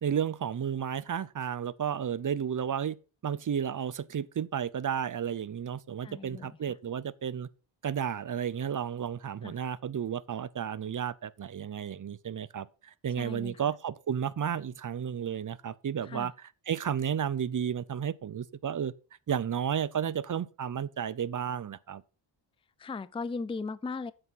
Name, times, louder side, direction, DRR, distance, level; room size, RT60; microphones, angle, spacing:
voice 1, 0.0-3.0 3.2-7.5 7.8-18.9 19.3-22.0, right 8 dB, 40° right, 0.6 m, -32 dB
voice 2, 6.0-6.5 9.4-9.5 13.2-13.6 16.1-16.3 22.8-24.1, left 4 dB, 10° left, 0.4 m, -37 dB
8.4 x 7.9 x 5.7 m
wide cardioid pair, 120°, 48 cm